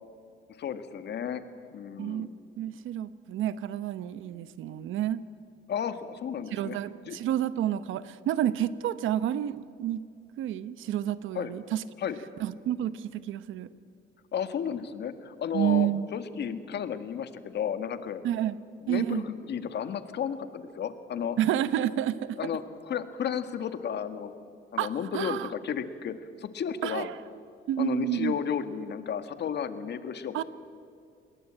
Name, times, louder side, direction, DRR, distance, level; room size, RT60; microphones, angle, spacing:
voice 1, 0.6-1.4 1.7-2.3 5.7-6.8 7.1-7.2 11.3-11.5 12.0-12.2 14.3-18.2 18.8-21.4 22.4-24.3 24.7-27.1 27.8-30.4, left 8 dB, 60° left, 10 dB, 1.8 m, -33 dB
voice 2, 2.0-2.3 2.6-5.2 6.5-10.0 10.4-11.8 12.4-13.7 15.5-16.1 18.2-18.6 18.9-19.2 21.4-22.4 24.8-24.9 25.1-25.5 26.8-27.1 27.7-28.4 30.3-30.4, right 11 dB, 85° right, 15 dB, 1.0 m, -29 dB
26.0 x 21.5 x 8.9 m, 2.4 s
cardioid pair, 115°, 20 cm